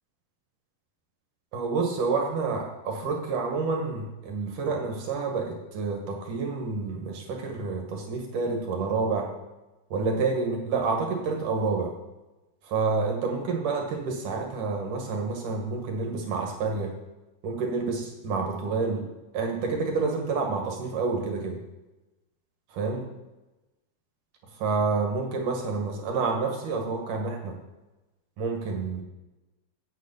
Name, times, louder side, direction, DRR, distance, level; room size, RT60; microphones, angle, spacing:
voice 1, 1.5-9.3 9.9-11.9 12.6-16.9 17.4-19.0 19.3-21.6 22.7-23.0 24.6-27.5 28.4-29.0, right 4 dB, 60° right, 1 dB, 2.9 m, -28 dB
9.5 x 6.5 x 8.2 m, 1.1 s
omnidirectional pair, 4.6 m